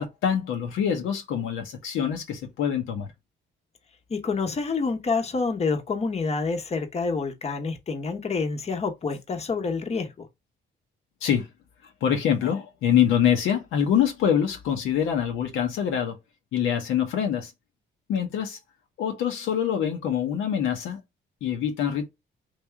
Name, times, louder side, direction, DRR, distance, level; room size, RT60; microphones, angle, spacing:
voice 1, 0.0-3.1 11.2-11.5 12.0-16.2 16.5-17.5 18.1-18.6 19.0-21.0 21.4-22.1, left 9 dB, 85° left, 0.9 m, -25 dB
voice 2, 4.1-10.3, left 4 dB, 30° left, 0.8 m, -28 dB
3.3 x 2.6 x 3.4 m
cardioid pair, 90°, 20 cm